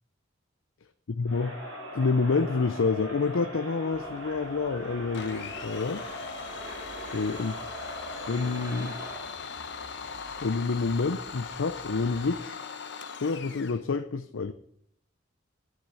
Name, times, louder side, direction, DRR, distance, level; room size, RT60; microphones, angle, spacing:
voice 1, 1.2-1.5 1.9-6.0 7.1-7.6 8.3-9.0 10.4-12.6 13.2-14.5, left 4 dB, 85° left, 10 dB, 0.6 m, -28 dB
Crowd, 1.2-9.4, equal, 70° right, 5.5 m, -41 dB
sound 1, 3.9-12.4, left 1 dB, 40° left, 1.2 m, -53 dB
Domestic sounds home sounds, 5.1-13.8, left 5 dB, 60° left, 1.0 m, -40 dB
10.5 x 6.6 x 8.4 m, 0.70 s
head